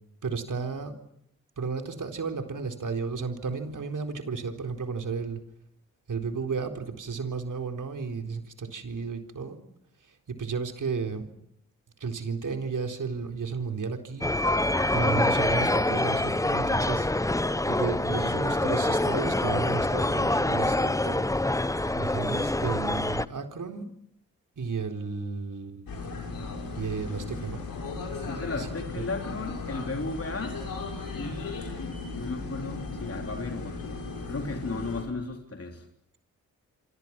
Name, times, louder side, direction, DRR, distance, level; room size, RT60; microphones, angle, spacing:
voice 1, 0.2-0.9 1.6-5.4 6.1-9.6 10.1-11.3 12.0-14.3 14.7-17.1 17.4-21.3 21.9-23.9 24.6-26.0 26.7-27.6 28.5-28.7 28.9-29.1, right 5 dB, 60° right, 5 dB, 4.1 m, -33 dB
sound 1, 14.2-23.3, left 1 dB, 10° left, 0.9 m, -26 dB
sound 2, 25.9-35.0, left 3 dB, 70° left, 7.0 m, -36 dB
voice 2, 28.2-30.6 31.1-35.9, left 3 dB, 40° left, 3 dB, 3.8 m, -35 dB
28.5 x 25.0 x 6.0 m, 0.72 s
supercardioid pair, 45°, 36 cm